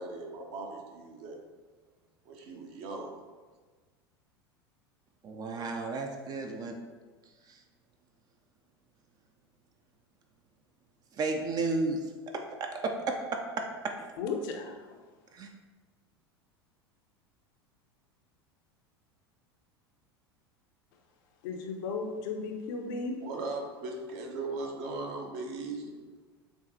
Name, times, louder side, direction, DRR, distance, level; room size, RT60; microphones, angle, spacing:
voice 1, 0.0-1.4 2.2-3.1 23.2-25.9, right 3 dB, 50° right, 1 dB, 0.8 m, -38 dB
voice 2, 5.2-6.8 7.5-7.6 11.2-12.0 12.3-14.1 15.3-15.5, right 3 dB, 30° right, 3 dB, 0.4 m, -33 dB
voice 3, 14.2-15.0 21.4-23.2, left 4 dB, 55° left, 3 dB, 0.6 m, -35 dB
7.0 x 2.4 x 2.7 m, 1.4 s
figure-of-eight pair, 80°, 13 cm